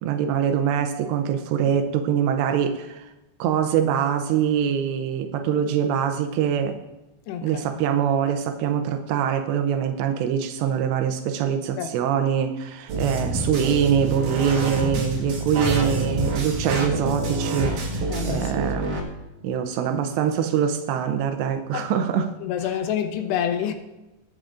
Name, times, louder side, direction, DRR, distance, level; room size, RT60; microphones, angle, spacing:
voice 1, 0.0-3.1 3.4-6.8 7.4-19.0 19.4-22.3 22.6-22.7, right 8 dB, 90° right, 2.9 m, -24 dB
voice 2, 7.3-7.6 11.8-11.9 14.9-15.2 18.1-18.5 21.7-21.9 22.4-23.7, left 9 dB, 80° left, 3.0 m, -27 dB
sound 1, 12.9-19.0, right 2 dB, 55° right, 2.8 m, -27 dB
21.5 x 9.1 x 2.5 m
omnidirectional pair, 4.9 m